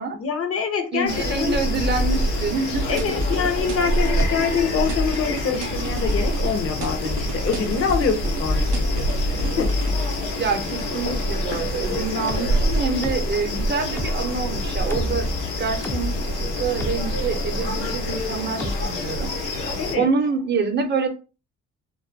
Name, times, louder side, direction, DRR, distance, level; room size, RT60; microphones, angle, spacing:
voice 1, 0.2-1.6 2.9-9.8 19.8-20.1, left 6 dB, 50° left, 0.6 m, -25 dB
voice 2, 0.9-3.1 10.4-15.3 15.6-16.2 16.6-19.3 20.0-21.1, right 5 dB, 35° right, 0.6 m, -26 dB
sound 1, 1.1-19.9, equal, 80° left, 0.9 m, -26 dB
sound 2, 1.2-1.5 1.8-2.6 3.2-3.8 4.2-4.6 4.9-5.5 6.0-6.7 7.1-7.2 7.9-8.2 8.5-9.3 9.6-10.5 11.1-11.9 12.3-18.9, left 2 dB, 10° left, 0.3 m, -29 dB
Wako Snares, 3.0-4.6 4.9-6.5 6.8-8.4 8.7-10.3, right 7 dB, 80° right, 0.5 m, -36 dB
2.3 x 2.1 x 2.5 m
cardioid pair, 90°, 30 cm